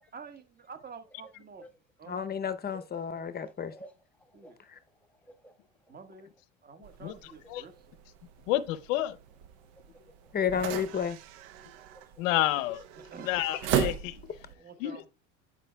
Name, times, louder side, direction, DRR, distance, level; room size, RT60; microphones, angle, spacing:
voice 1, 0.1-1.6 2.0-2.2 4.3-4.6 5.9-6.3 6.6-7.7 13.1-13.3 14.5-15.1, right 5 dB, 25° right, 1.4 m, -48 dB
voice 2, 2.1-3.7 10.3-11.2, left 7 dB, 25° left, 0.7 m, -31 dB
voice 3, 2.7-3.9 4.2-4.5 5.2-5.6 7.4-7.6 9.6-9.7 9.9-10.4 11.7-12.2 14.5-14.6, right 1 dB, 5° left, 1.3 m, -53 dB
sound 1, 6.8-14.5, right 8 dB, 75° right, 0.8 m, -37 dB
voice 4, 7.0-7.6 8.5-9.2 12.2-12.8 13.2-14.2 14.8-15.0, left 14 dB, 90° left, 0.7 m, -30 dB
10.5 x 5.0 x 2.2 m
supercardioid pair, 95°, 38 cm